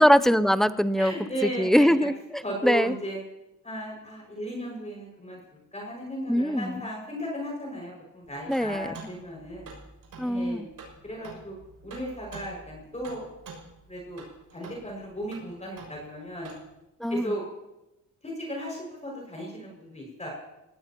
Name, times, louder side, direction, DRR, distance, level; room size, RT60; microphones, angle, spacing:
voice 1, 0.0-1.1 1.4-2.9 6.3-6.8 8.5-8.9 10.2-10.7 17.0-17.3, equal, ahead, 12 dB, 0.6 m, -22 dB
voice 2, 1.0-1.9 2.4-3.2 3.6-9.7 10.2-10.6 11.0-11.6 11.8-13.2 13.9-14.2 14.5-16.5 17.1-17.4 18.2-20.3, equal, 20° left, -1 dB, 6.0 m, -35 dB
sound 1, 8.2-16.7, right 3 dB, 75° right, 6.7 m, -48 dB
27.5 x 18.0 x 3.0 m, 0.94 s
cardioid pair, 100°, 34 cm